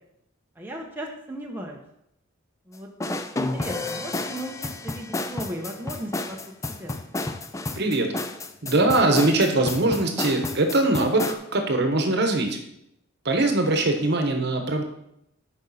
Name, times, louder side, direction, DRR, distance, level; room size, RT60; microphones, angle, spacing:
voice 1, 0.6-1.8 2.7-2.9 3.4-7.0, right 1 dB, 10° right, 0 dB, 0.8 m, -36 dB
sound 1, 3.0-11.3, left 2 dB, 15° left, 0.4 m, -31 dB
voice 2, 7.8-8.1 8.6-12.6 13.2-14.8, right 2 dB, 55° right, 5 dB, 1.1 m, -22 dB
8.9 x 5.4 x 4.2 m, 0.79 s
head